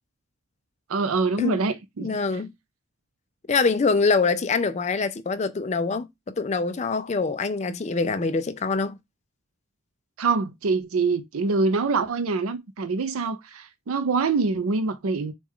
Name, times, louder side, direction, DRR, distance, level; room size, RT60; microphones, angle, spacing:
voice 1, 0.9-2.1 10.2-15.3, right 4 dB, 85° right, 0.5 m, -25 dB
voice 2, 2.0-2.5 3.5-9.0, left 4 dB, 30° left, 0.4 m, -24 dB
6.2 x 2.3 x 3.6 m
head